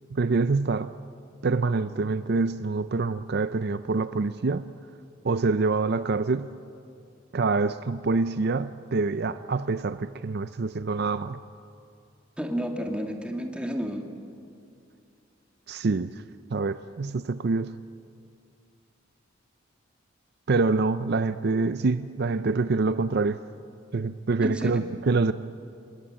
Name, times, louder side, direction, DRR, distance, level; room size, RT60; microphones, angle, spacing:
voice 1, 0.1-0.9 1.4-4.7 5.2-6.5 7.3-11.4 15.7-16.1 16.5-17.7 20.5-23.4 23.9-25.3, right 3 dB, 55° right, 13 dB, 0.5 m, -26 dB
voice 2, 12.4-14.0 24.4-24.8, equal, 5° right, 3 dB, 2.1 m, -31 dB
26.5 x 21.5 x 8.9 m, 2.5 s
head